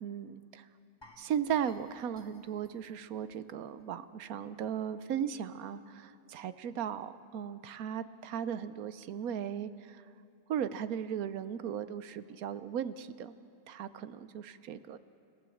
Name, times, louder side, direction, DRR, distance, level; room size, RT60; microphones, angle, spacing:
voice 1, 0.0-0.6 1.2-10.0 10.5-13.3 13.7-15.0, right 8 dB, 90° right, 13 dB, 1.2 m, -37 dB
sound 1, 1.0-4.0 4.3-4.5 4.9-5.0, left 2 dB, 20° left, 1.7 m, -60 dB
30.0 x 16.0 x 7.1 m, 2.5 s
omnidirectional pair, 1.5 m